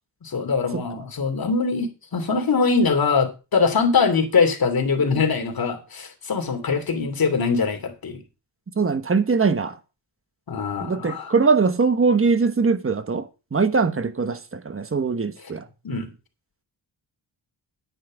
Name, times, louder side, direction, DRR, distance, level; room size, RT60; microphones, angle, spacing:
voice 1, 0.2-8.2 10.5-11.3 15.8-16.1, left 4 dB, 50° left, 2.9 m, -22 dB
voice 2, 8.8-9.8 10.8-13.3 13.5-15.6, right 4 dB, 30° right, 1.2 m, -21 dB
9.9 x 9.6 x 5.0 m
wide cardioid pair, 145°, 45 cm